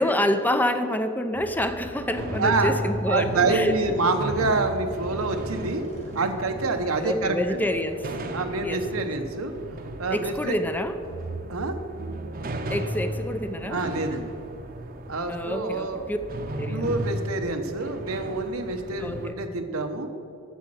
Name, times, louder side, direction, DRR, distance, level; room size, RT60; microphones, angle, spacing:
voice 1, 0.0-3.8 7.0-8.1 8.6-9.1 10.1-11.0 12.7-13.8 15.3-16.2 16.6-16.9 19.0-19.4, left 1 dB, 10° left, 9 dB, 0.5 m, -27 dB
sound 1, 1.3-19.3, right 1 dB, 45° right, 0.8 m, -35 dB
sound 2, 1.9-8.4, equal, 35° left, 1.7 m, -46 dB
voice 2, 2.4-2.8 3.1-5.8 6.1-7.6 8.3-9.5 10.0-10.6 11.5-11.7 13.7-14.3 15.1-16.1 16.7-20.1, right 3 dB, 85° right, 6 dB, 1.0 m, -26 dB
8.3 x 7.5 x 7.7 m, 2.6 s
head